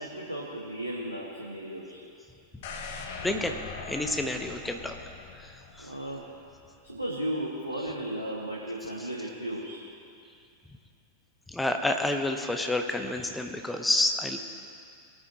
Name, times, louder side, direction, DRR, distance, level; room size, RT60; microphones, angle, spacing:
voice 1, 0.0-2.0 5.8-6.3 6.8-9.8, right 1 dB, 85° right, -4 dB, 1.4 m, -35 dB
sound 1, 2.6-6.6 7.0-7.1, left 4 dB, 55° left, 1.1 m, -42 dB
voice 2, 3.2-3.5 3.9-4.9 5.3-5.9 11.5-14.4, left 1 dB, 5° left, 5 dB, 1.0 m, -29 dB
20.0 x 9.2 x 3.0 m, 2.4 s
figure-of-eight pair, 90°, 0 cm